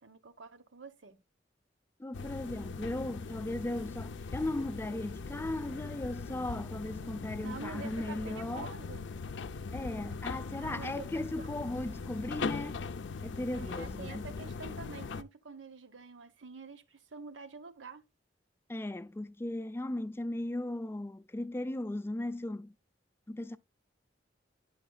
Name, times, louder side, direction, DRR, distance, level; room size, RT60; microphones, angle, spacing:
voice 1, 0.0-1.2 7.4-9.1 10.6-11.5 13.5-18.0, right 4 dB, 85° right, 0.9 m, -47 dB
voice 2, 2.0-8.7 9.7-12.8 13.2-14.2 18.7-22.7 23.3-23.6, left 1 dB, 15° left, 0.4 m, -37 dB
sound 1, 2.1-15.2, left 4 dB, 70° left, 0.5 m, -40 dB
10.0 x 5.7 x 2.2 m
head